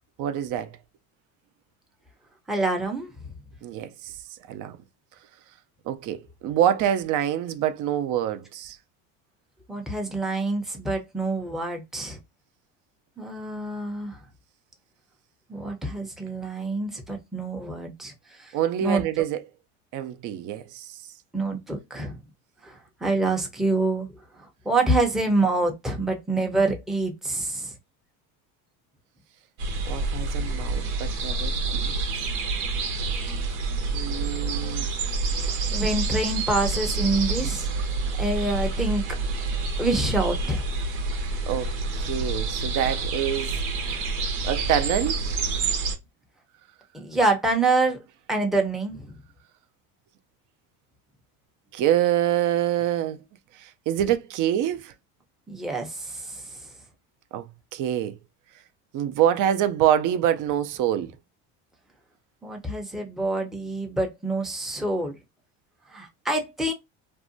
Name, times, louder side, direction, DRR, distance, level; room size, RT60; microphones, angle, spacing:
voice 1, 0.2-0.7 3.6-4.8 5.9-8.8 18.5-19.4 19.9-20.9 29.9-31.9 33.9-34.9 41.5-43.6 44.4-45.2 51.7-53.2 53.6-54.9 57.3-57.5 57.7-58.2 58.9-61.1, right 10 dB, 50° right, 0.5 m, -26 dB
voice 2, 2.5-3.1 9.7-12.2 13.2-14.2 15.5-18.1 18.4-18.5 18.8-19.0 21.3-22.2 22.6-24.1 24.7-27.7 35.4-37.7 38.2-39.0 39.8-40.6 46.9-48.0 48.3-49.1 55.5-56.4 62.4-65.2 65.9-66.7, right 2 dB, ahead, 0.5 m, -26 dB
sound 1, 29.6-46.0, right 3 dB, 90° right, 0.8 m, -28 dB
2.6 x 2.1 x 2.5 m
supercardioid pair, 105°, 40 cm